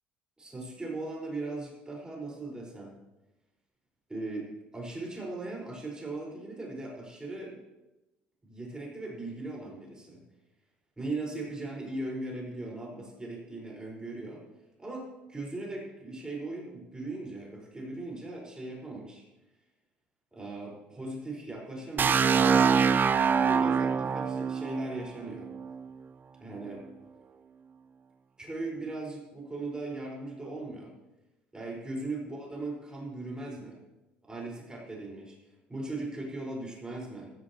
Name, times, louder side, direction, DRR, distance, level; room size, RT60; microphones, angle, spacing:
voice 1, 0.4-2.9 4.1-7.6 8.4-10.2 11.0-14.4 14.8-19.2 20.3-22.8 23.3-25.5 26.4-26.9 28.4-30.9 31.5-33.8 34.3-35.4 35.7-37.3, right 2 dB, 15° right, -3 dB, 5.8 m, -38 dB
sound 1, 22.0-25.8, right 6 dB, 35° right, 0.7 m, -24 dB
15.0 x 14.5 x 3.3 m, 1.0 s
hypercardioid pair, 60°, 5 cm